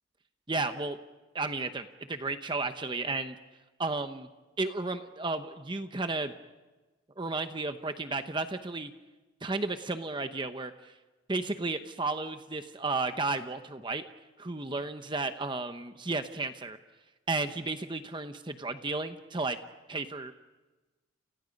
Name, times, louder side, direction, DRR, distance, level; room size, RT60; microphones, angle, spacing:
voice 1, 0.5-1.0 1.3-3.3 3.8-4.3 4.6-6.3 7.2-8.9 9.4-10.9 11.3-14.0 14.4-16.8 17.3-19.6 19.9-20.3, right 3 dB, 25° right, 8 dB, 0.9 m, -33 dB
30.0 x 29.5 x 5.3 m, 1.2 s
head